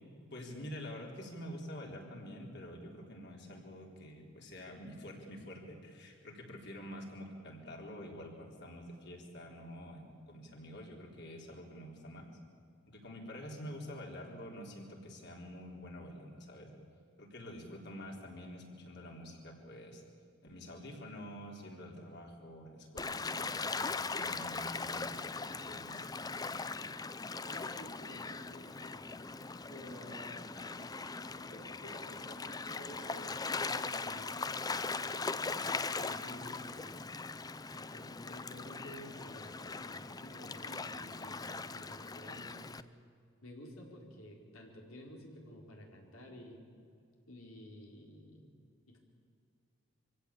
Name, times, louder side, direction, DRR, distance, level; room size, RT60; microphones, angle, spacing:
voice 1, 0.3-12.3 12.9-16.7 17.2-20.0 20.4-26.2, equal, 55° left, 0 dB, 4.0 m, -47 dB
Gull seagull / Waves surf, 23.0-42.8, left 4 dB, 20° left, 0.5 m, -40 dB
voice 2, 27.4-29.0 29.7-37.2 37.7-42.7 43.4-46.7 47.3-48.5 48.9-49.0, left 1 dB, 85° left, 0 dB, 4.6 m, -52 dB
25.0 x 16.5 x 8.7 m, 2.4 s
head